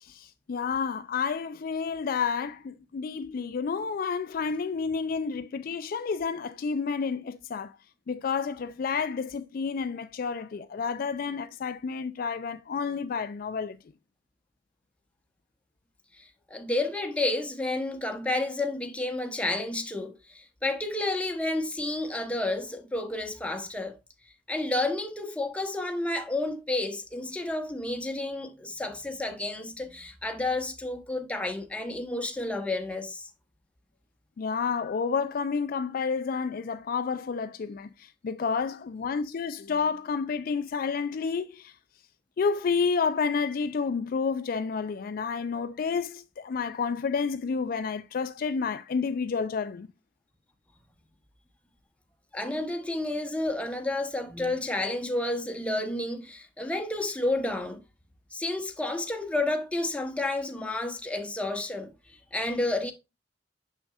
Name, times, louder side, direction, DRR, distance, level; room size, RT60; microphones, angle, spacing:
voice 1, 0.0-7.7 8.1-13.8 34.4-41.7 42.4-49.9, left 5 dB, 50° left, 0.4 m, -30 dB
voice 2, 16.2-24.0 24.5-33.3 52.3-57.8 58.3-62.9, left 2 dB, 5° left, 0.9 m, -31 dB
6.6 x 6.0 x 2.3 m
head